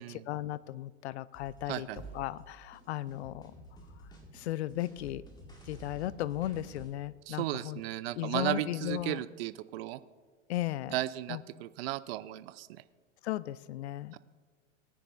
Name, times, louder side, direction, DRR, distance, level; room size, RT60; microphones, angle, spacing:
voice 1, 0.0-1.9 2.1-3.5 4.3-5.2 5.6-7.8 8.1-9.2 10.5-11.0 11.3-11.4 13.2-14.2, left 14 dB, 60° left, 19 dB, 0.5 m, -36 dB
sound 1, 1.3-6.9, right 1 dB, 10° left, 2.0 m, -52 dB
sound 2, 1.9-3.1 5.0-5.9 6.3-6.9, right 5 dB, 20° right, 3.3 m, -53 dB
voice 2, 7.3-10.0 10.9-12.8 14.1-14.2, right 15 dB, 55° right, 16 dB, 0.5 m, -35 dB
18.5 x 9.8 x 2.6 m, 1.5 s
hypercardioid pair, 100°, 38 cm